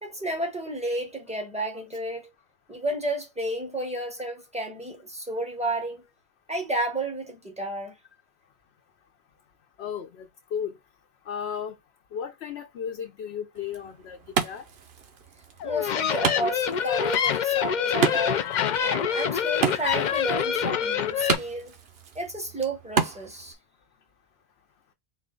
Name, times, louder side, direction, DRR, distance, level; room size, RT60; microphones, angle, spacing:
voice 1, 0.0-2.3 2.7-6.0 6.5-7.9 15.6-18.4 18.8-21.7 22.1-23.6, right 1 dB, 5° right, 1.2 m, -31 dB
voice 2, 9.8-10.8 11.3-11.8 12.1-14.6 18.0-18.1, left 8 dB, 90° left, 0.9 m, -35 dB
Wood, 13.5-23.5, right 6 dB, 75° right, 1.0 m, -32 dB
sound 1, 15.6-21.3, left 8 dB, 55° left, 0.6 m, -26 dB
4.2 x 2.2 x 3.8 m
omnidirectional pair, 1.1 m